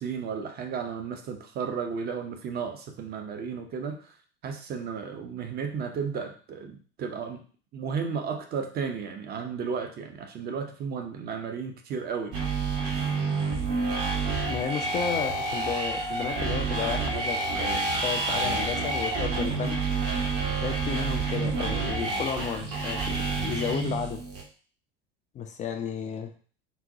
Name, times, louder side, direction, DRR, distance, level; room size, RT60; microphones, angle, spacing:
voice 1, 0.0-4.1 4.4-7.4 7.7-12.3, right 6 dB, 30° right, 5 dB, 0.6 m, -33 dB
sound 1, 12.3-24.4, right 3 dB, 55° right, 1.2 m, -28 dB
voice 2, 14.5-19.8 20.6-24.2 25.3-26.3, left 7 dB, 25° left, 5 dB, 0.4 m, -33 dB
3.9 x 2.2 x 2.7 m, 0.41 s
figure-of-eight pair, 70°, 31 cm